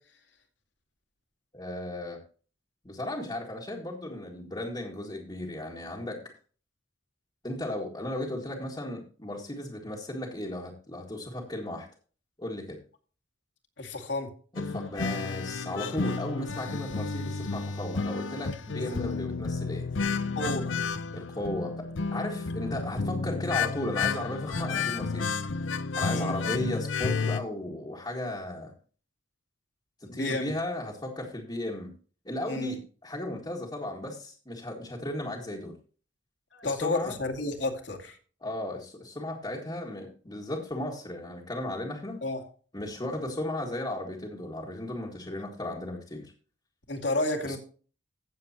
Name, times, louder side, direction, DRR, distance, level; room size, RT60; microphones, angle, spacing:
voice 1, 1.5-2.2 2.8-6.2 7.4-11.9 12.4-12.8 14.5-19.9 21.1-21.9 22.1-25.4 25.9-28.7 30.0-31.9 32.3-35.7 36.6-37.1 38.4-42.2 42.7-46.3 47.4-47.6, left 1 dB, 25° left, -3 dB, 1.9 m, -35 dB
voice 2, 13.8-14.3 18.8-19.0 20.3-20.8 26.1-26.4 30.1-30.5 32.5-32.7 36.5-38.2 42.2-42.4 46.9-47.6, left 2 dB, 65° left, 4 dB, 2.4 m, -31 dB
sound 1, 14.6-27.4, left 4 dB, 85° left, 0.7 m, -31 dB
16.0 x 7.5 x 2.9 m, 0.39 s
head